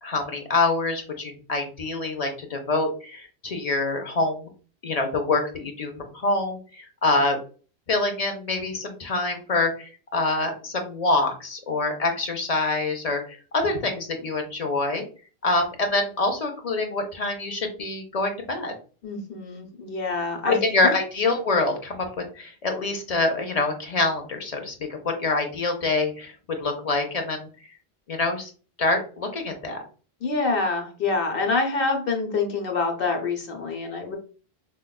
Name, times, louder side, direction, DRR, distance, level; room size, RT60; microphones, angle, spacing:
voice 1, 0.0-4.5 4.8-7.4 7.9-15.0 15.4-18.7 20.5-26.3 26.6-27.5 28.1-28.5 28.8-29.8, left 3 dB, 45° left, 4 dB, 0.6 m, -25 dB
voice 2, 19.0-21.0 30.2-34.2, left 3 dB, 65° left, 3 dB, 1.0 m, -26 dB
4.5 x 2.2 x 2.2 m, 0.38 s
omnidirectional pair, 1.1 m